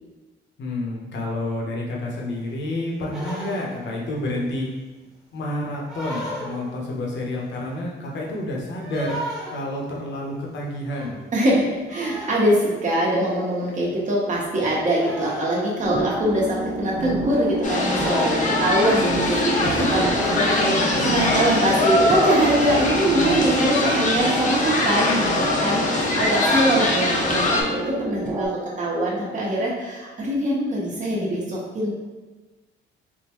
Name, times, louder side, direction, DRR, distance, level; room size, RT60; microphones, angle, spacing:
voice 1, 0.6-4.7 5.3-9.2 9.5-11.2 19.6-21.1, left 1 dB, 65° left, -2 dB, 0.9 m, -28 dB
sound 1, 3.0-3.9 5.9-6.8 8.8-9.7 10.9-11.3 11.9-12.6 13.9-14.0 15.0-15.9 17.7-18.8 19.8-20.2 20.7-21.1, equal, ahead, 1.0 m, -35 dB
voice 2, 11.3-20.1 21.0-28.5 28.8-31.9, right 1 dB, 40° right, -5 dB, 1.1 m, -23 dB
sound 2, 15.8-28.5, right 1 dB, 25° right, 0.5 m, -29 dB
sound 3, 17.6-27.6, left 2 dB, 40° left, 0.6 m, -23 dB
3.6 x 2.2 x 2.9 m, 1.2 s
cardioid pair, 90°, 20 cm